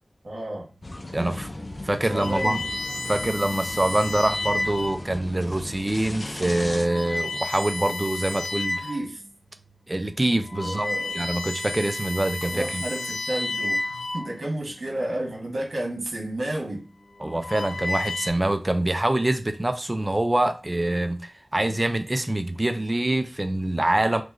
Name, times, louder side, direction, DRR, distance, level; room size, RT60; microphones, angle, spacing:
voice 1, 0.2-0.7 1.2-1.4 2.0-2.7 8.8-9.2 10.6-11.1 12.5-16.9, right 1 dB, 90° right, 1.3 m, -31 dB
sound 1, 0.8-6.9, left 1 dB, 50° left, 0.5 m, -37 dB
voice 2, 1.1-1.5 1.8-2.6 3.1-8.9 9.9-10.9 11.1-12.8 17.2-24.2, right 1 dB, 30° right, 0.5 m, -25 dB
sound 2, 1.8-5.2 5.9-6.1 6.7-9.1 9.6-9.7 10.2-14.7 15.7-16.1 17.0-18.3, left 2 dB, 75° left, 1.0 m, -32 dB
3.1 x 2.5 x 3.6 m
wide cardioid pair, 50°, 0 cm